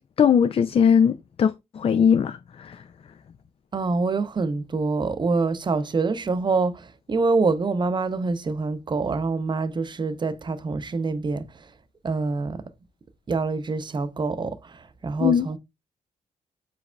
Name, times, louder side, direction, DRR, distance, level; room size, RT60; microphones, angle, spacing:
voice 1, 0.0-2.8 15.2-15.5, left 7 dB, 45° left, 0.4 m, -20 dB
voice 2, 3.7-11.4 12.0-12.6 13.3-15.6, right 4 dB, 35° right, 0.6 m, -25 dB
5.0 x 4.0 x 2.2 m
cardioid pair, 70°, 13 cm